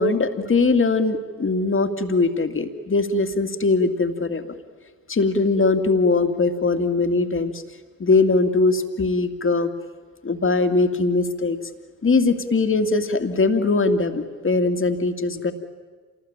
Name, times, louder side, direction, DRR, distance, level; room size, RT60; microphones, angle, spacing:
voice 1, 0.0-4.4 5.1-7.6 8.0-9.7 10.2-11.6 12.0-15.5, left 3 dB, 30° left, 7 dB, 2.4 m, -21 dB
27.5 x 19.5 x 9.0 m, 1.5 s
hypercardioid pair, 55°, 39 cm